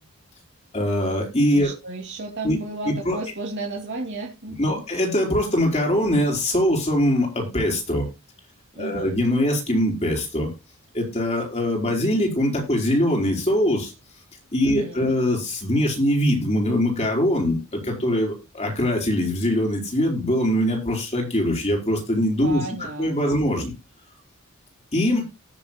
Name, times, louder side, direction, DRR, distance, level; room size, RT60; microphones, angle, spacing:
voice 1, 0.7-1.7 2.4-2.6 2.9-3.2 4.6-8.0 8.7-10.5 10.9-13.9 14.5-22.7 23.0-23.7 24.9-25.2, left 1 dB, 30° left, 0 dB, 5.0 m, -22 dB
voice 2, 1.5-4.8 8.8-9.1 14.6-15.1 22.4-23.4, right 2 dB, 55° right, 0 dB, 2.6 m, -33 dB
19.0 x 7.5 x 2.2 m, 0.26 s
head